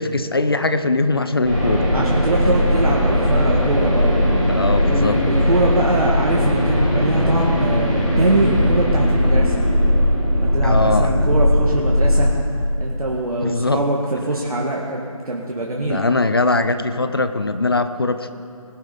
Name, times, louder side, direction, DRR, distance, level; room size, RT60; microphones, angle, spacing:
voice 1, 0.0-1.9 4.5-5.2 10.6-11.1 13.4-13.8 15.8-18.3, left 2 dB, 40° left, 10 dB, 0.6 m, -21 dB
sound 1, 1.4-12.3, left 1 dB, ahead, 2.7 m, -18 dB
voice 2, 1.9-4.1 4.8-9.5 10.3-12.3 12.8-16.0, right 2 dB, 85° right, -3 dB, 1.9 m, -22 dB
20.5 x 7.2 x 5.3 m, 2.7 s
figure-of-eight pair, 170°, 18 cm